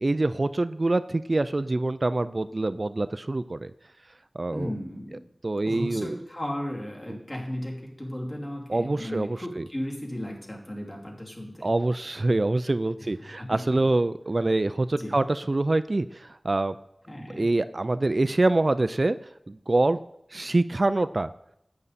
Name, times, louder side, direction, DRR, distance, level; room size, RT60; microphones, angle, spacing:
voice 1, 0.0-3.7 4.3-4.7 5.4-6.2 7.1-7.2 8.7-9.7 11.6-16.8 17.2-19.2 19.5-20.0 20.3-21.3, right 2 dB, 50° right, 13 dB, 0.3 m, -25 dB
voice 2, 4.5-5.2 5.6-11.7 13.0-13.9 14.9-15.2 17.1-17.5, equal, 35° left, -2 dB, 2.8 m, -35 dB
11.0 x 8.7 x 4.1 m, 0.79 s
wide cardioid pair, 60°, 0 cm